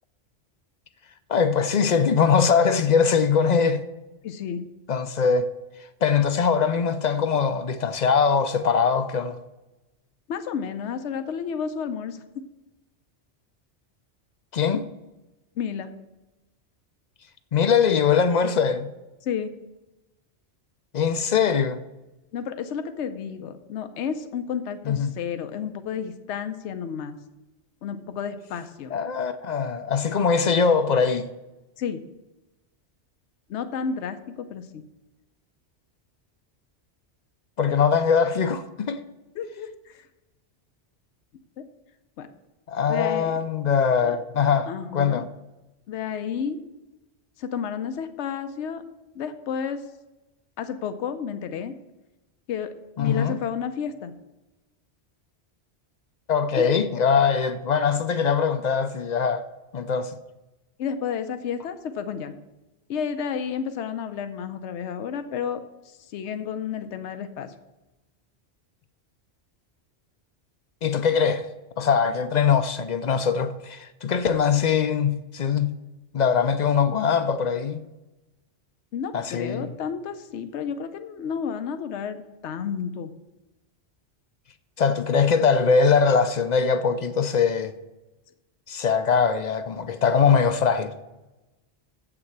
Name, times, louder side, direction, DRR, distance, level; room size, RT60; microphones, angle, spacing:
voice 1, 1.3-3.8 4.9-5.5 6.0-9.4 14.5-14.9 17.5-18.9 20.9-21.8 24.9-25.1 28.9-31.3 37.6-39.0 42.7-45.3 53.0-53.4 56.3-59.4 59.7-60.1 70.8-71.5 71.8-75.7 76.1-77.8 79.1-79.7 84.8-87.7 88.7-90.9, left 6 dB, 55° left, 0.5 m, -22 dB
voice 2, 4.2-4.6 10.3-12.2 15.6-15.9 19.2-19.5 22.3-27.2 27.8-28.9 31.8-32.0 33.5-34.8 39.4-40.1 42.2-42.3 42.9-43.4 44.1-44.2 44.7-45.2 45.9-46.6 47.4-48.8 49.2-49.8 50.6-51.7 52.5-54.1 56.6-56.7 60.8-62.3 62.9-67.5 78.9-83.1, left 7 dB, 85° left, 0.9 m, -31 dB
7.7 x 5.9 x 7.8 m
omnidirectional pair, 1.2 m